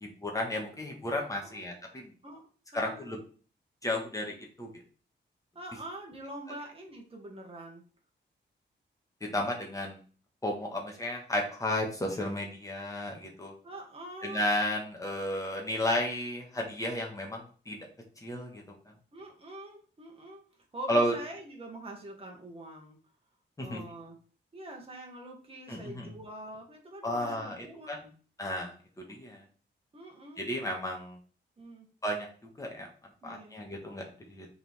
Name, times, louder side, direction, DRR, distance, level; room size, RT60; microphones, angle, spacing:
voice 1, 0.0-2.1 2.7-3.2 3.8-4.7 9.2-10.0 10.4-13.5 14.2-17.8 18.2-18.7 20.9-21.1 23.6-23.8 25.7-26.1 27.0-28.0 28.4-29.4 30.4-31.2 32.0-32.3 32.6-32.9 33.2-34.5, left 1 dB, 15° left, 0 dB, 1.6 m, -33 dB
voice 2, 2.7-3.2 5.6-7.8 13.6-14.4 19.1-20.4 20.7-23.0 23.6-24.2 24.5-28.1 29.9-30.4 31.6-31.9 33.2-33.6, right 1 dB, 30° right, 0 dB, 1.8 m, -45 dB
6.9 x 4.1 x 3.6 m, 0.40 s
wide cardioid pair, 145°, 19 cm